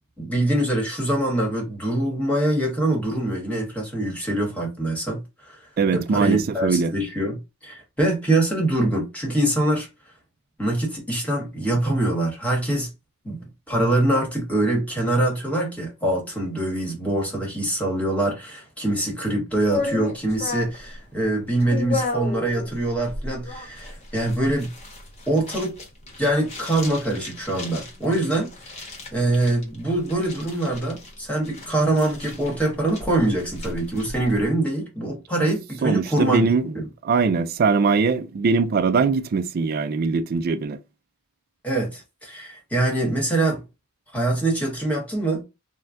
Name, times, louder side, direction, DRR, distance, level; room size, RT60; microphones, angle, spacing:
voice 1, 0.2-5.2 5.5-5.6 5.9-9.9 10.6-12.9 13.2-24.7 25.3-25.7 26.2-28.5 29.1-36.5 36.7-36.8 41.6-43.6 44.1-45.5, right 1 dB, 5° left, 1.2 m, -24 dB
voice 2, 5.8-6.9 35.8-36.8 37.0-40.8, right 4 dB, 45° right, 0.4 m, -21 dB
sound 1, 19.7-34.5, left 3 dB, 30° left, 0.9 m, -35 dB
3.7 x 2.2 x 2.5 m
head